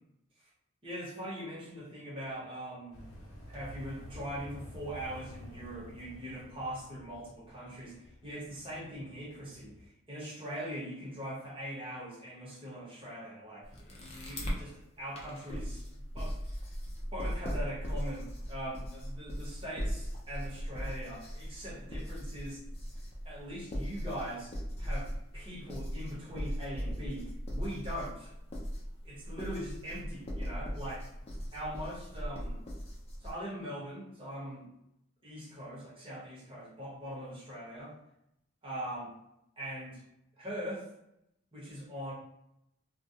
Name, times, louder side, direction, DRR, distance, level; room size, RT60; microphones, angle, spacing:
voice 1, 0.8-3.0 3.5-7.9 8.2-9.7 10.1-15.9 16.1-16.3 17.1-22.6 23.2-24.5 24.8-28.3 29.0-31.1 31.5-32.6 33.2-34.7 35.2-37.9 38.6-39.1 39.6-40.0 40.4-40.9 41.5-42.1, equal, 25° right, -7 dB, 0.9 m, -41 dB
sound 1, 2.9-9.9, left 1 dB, 70° left, 0.6 m, -50 dB
sound 2, 13.6-14.6 15.2-33.3, equal, 30° left, 0.5 m, -39 dB
2.3 x 2.1 x 2.7 m, 0.82 s
head